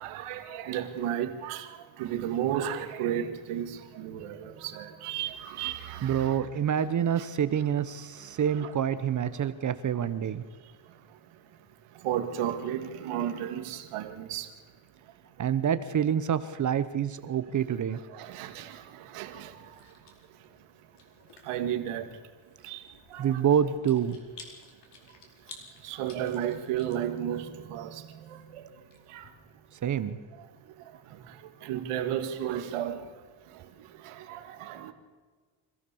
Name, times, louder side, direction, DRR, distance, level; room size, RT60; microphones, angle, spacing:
voice 1, 0.0-6.4 7.2-7.3 8.5-8.7 12.0-14.5 18.1-19.5 21.5-22.1 22.6-22.8 23.1-23.4 25.8-28.0 28.5-28.6 29.1-29.3 31.6-33.0 34.0-34.9, right 10 dB, 85° right, 2.3 m, -33 dB
voice 2, 6.0-10.4 15.4-18.0 23.2-24.2 29.8-30.2, right 9 dB, 35° right, 0.9 m, -27 dB
Chewing mastication, 19.1-29.3, left 4 dB, 55° left, 4.8 m, -55 dB
26.0 x 15.5 x 7.0 m
cardioid pair, 145°, 50 cm